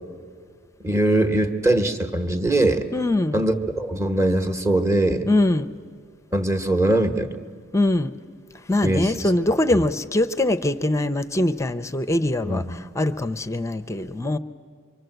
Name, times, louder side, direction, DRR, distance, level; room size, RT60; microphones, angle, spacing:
voice 1, 0.8-2.9 3.3-5.3 6.3-7.4 8.8-9.3 12.4-12.8, right 1 dB, 15° right, 7 dB, 1.2 m, -22 dB
voice 2, 2.9-3.4 5.3-5.7 7.7-8.1 8.7-14.4, left 1 dB, 15° left, 11 dB, 0.6 m, -22 dB
25.0 x 25.0 x 8.0 m, 2.1 s
head